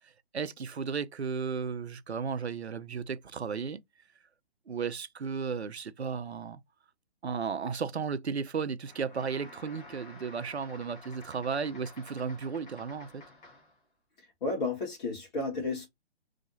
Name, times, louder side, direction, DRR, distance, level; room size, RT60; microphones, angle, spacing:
voice 1, 0.3-3.8 4.7-6.6 7.2-13.2, right 6 dB, 80° right, 0.6 m, -34 dB
sound 1, 8.8-13.8, left 2 dB, 20° left, 1.4 m, -51 dB
voice 2, 14.4-15.9, left 3 dB, 40° left, 1.7 m, -32 dB
3.2 x 2.7 x 3.9 m
figure-of-eight pair, 135°, 32 cm